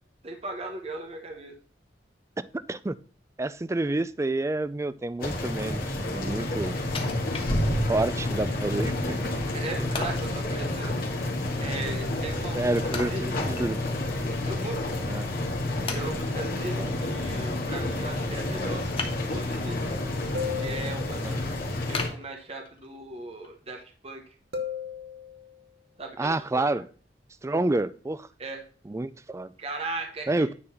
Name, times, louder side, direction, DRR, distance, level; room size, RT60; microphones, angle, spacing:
voice 1, 0.2-1.5 9.5-10.9 11.6-12.7 13.0-13.4 14.4-14.9 15.9-18.9 19.3-19.8 20.6-21.6 21.9-24.2 26.0-26.8 28.4-28.6 29.6-30.5, right 2 dB, 35° right, 1.1 m, -37 dB
voice 2, 2.4-3.0 3.4-6.7 7.9-9.3 12.5-13.8 15.1-15.3 16.8-16.9 21.2-21.4 26.2-26.9 27.4-28.3 28.9-29.5 30.3-30.5, right 2 dB, 15° right, 0.4 m, -29 dB
sound 1, 5.2-22.1, left 1 dB, 55° left, 2.1 m, -29 dB
Wood, 6.9-8.1 8.5-8.6 9.9-10.4 12.9-14.0 14.4-14.5 15.2-15.3 15.9-16.5 18.9-19.7 20.2-20.6 21.0-21.1 21.9-23.0 23.4-23.5, left 4 dB, 30° left, 1.1 m, -37 dB
sound 2, 20.3-21.5 24.5-25.6, left 6 dB, 65° right, 1.1 m, -35 dB
9.7 x 4.0 x 5.8 m
head